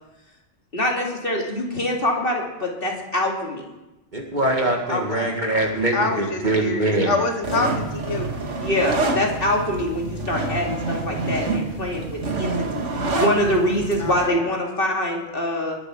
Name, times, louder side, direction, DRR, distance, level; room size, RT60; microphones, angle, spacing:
voice 1, 0.7-3.6 8.6-12.9 13.1-15.8, left 1 dB, 40° left, 0 dB, 2.7 m, -24 dB
voice 2, 4.1-7.2, right 1 dB, 35° right, 2 dB, 2.1 m, -23 dB
voice 3, 4.9-5.3 5.9-8.3 14.0-14.4, left 3 dB, 65° left, 5 dB, 1.4 m, -26 dB
sound 1, 7.4-14.3, right 3 dB, 65° right, 1.9 m, -27 dB
21.0 x 8.0 x 6.1 m, 1.0 s
omnidirectional pair, 1.4 m